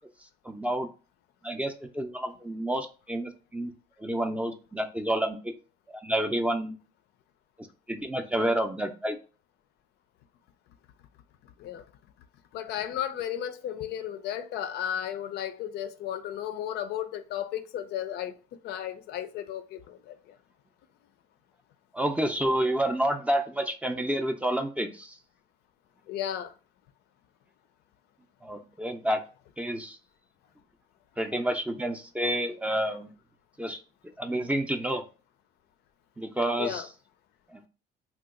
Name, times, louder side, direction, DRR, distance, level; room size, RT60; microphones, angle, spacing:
voice 1, 0.4-0.9 1.4-3.7 4.0-5.5 6.0-6.8 7.9-9.2 21.9-25.1 28.4-29.2 29.6-30.0 31.2-33.1 33.6-33.8 34.2-35.0 36.2-36.9 37.5-37.6, right 1 dB, 10° right, 0.4 m, -29 dB
voice 2, 12.5-18.3 18.6-20.1 26.1-26.5 36.6-36.9, left 10 dB, 75° left, 0.4 m, -34 dB
2.7 x 2.3 x 3.6 m
cardioid pair, 110°, 17 cm